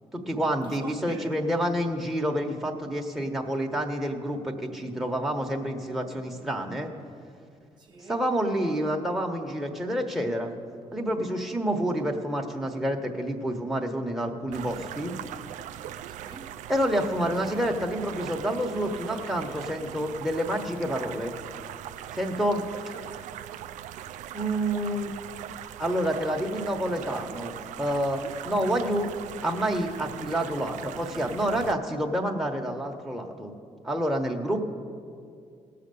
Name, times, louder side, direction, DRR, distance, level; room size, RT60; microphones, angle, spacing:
voice 1, 0.1-6.9 8.1-10.5 10.9-15.1 16.7-21.3 22.1-22.6 24.3-25.1 25.8-29.1 29.4-33.5 33.8-34.7, equal, ahead, 1.2 m, -28 dB
voice 2, 0.6-1.4 7.8-8.2 16.1-16.5 22.6-22.8, right 3 dB, 35° right, 1.1 m, -45 dB
sound 1, 14.5-31.7, right 11 dB, 85° right, 0.4 m, -40 dB
17.0 x 6.6 x 6.9 m
cardioid pair, 80°, 12 cm